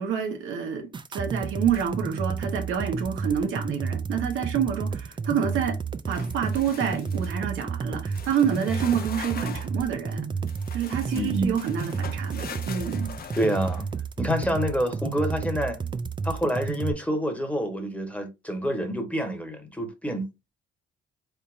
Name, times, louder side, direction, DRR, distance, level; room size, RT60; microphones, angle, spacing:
voice 1, 0.0-5.8 6.1-10.3 10.7-13.1, right 8 dB, 85° right, 1.1 m, -28 dB
sound 1, 0.9-16.9, right 5 dB, 25° right, 0.4 m, -31 dB
sound 2, 1.7-2.2 2.6-3.0 6.1-7.4 8.1-9.8 10.5-14.3, left 7 dB, 50° left, 0.6 m, -42 dB
voice 2, 11.1-11.6 13.4-13.9 14.2-15.8 16.2-20.5, equal, 5° left, 1.1 m, -28 dB
3.8 x 3.5 x 2.5 m
cardioid pair, 90°, 20 cm